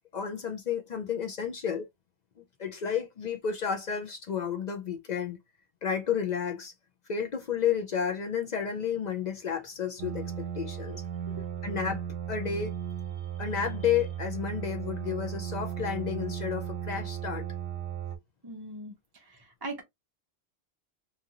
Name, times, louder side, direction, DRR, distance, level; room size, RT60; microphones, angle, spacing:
voice 1, 0.1-1.9 2.6-5.4 5.8-6.7 7.1-11.0 11.6-12.0 12.3-12.7 13.4-17.5, left 8 dB, 55° left, 0.5 m, -31 dB
sound 1, 10.0-18.2, right 9 dB, 75° right, 0.9 m, -36 dB
voice 2, 18.4-18.9 19.3-19.8, right 2 dB, 30° right, 0.5 m, -40 dB
2.8 x 2.5 x 2.8 m
omnidirectional pair, 1.1 m